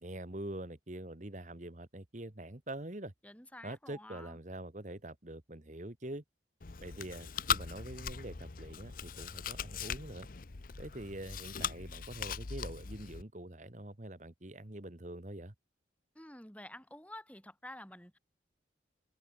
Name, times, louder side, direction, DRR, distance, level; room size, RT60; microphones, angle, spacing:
voice 1, 0.0-3.1 3.6-6.2 6.8-10.3 10.8-15.5, right 1 dB, 40° right, 1.5 m, -45 dB
voice 2, 3.2-4.4 16.1-18.2, left 1 dB, 5° left, 6.6 m, -50 dB
Chewing mastication, 6.6-13.2, left 7 dB, 45° left, 0.7 m, -39 dB
head